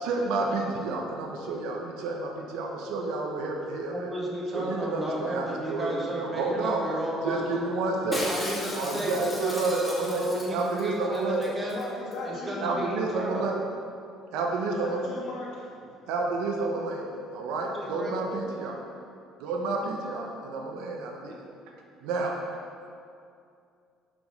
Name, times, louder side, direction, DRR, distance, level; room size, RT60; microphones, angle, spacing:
voice 1, 0.0-4.1 4.5-6.9 7.2-8.2 8.7-11.4 12.6-13.6 14.3-15.1 16.1-17.0 17.3-18.7 19.4-21.4 22.0-22.3, right 3 dB, 85° right, 0 dB, 1.0 m, -30 dB
voice 2, 3.9-7.6 8.3-11.8 12.2-13.5 17.7-18.4, right 1 dB, 20° right, -4 dB, 1.9 m, -33 dB
Shatter, 8.1-10.9 11.1-11.2 11.4-11.8 12.1-12.2, left 1 dB, 10° left, 1.8 m, -35 dB
voice 3, 8.9-9.5 11.7-12.9 14.7-16.1, left 2 dB, 75° left, -4 dB, 2.0 m, -38 dB
7.4 x 5.1 x 5.5 m, 2.4 s
cardioid pair, 115°, 0 cm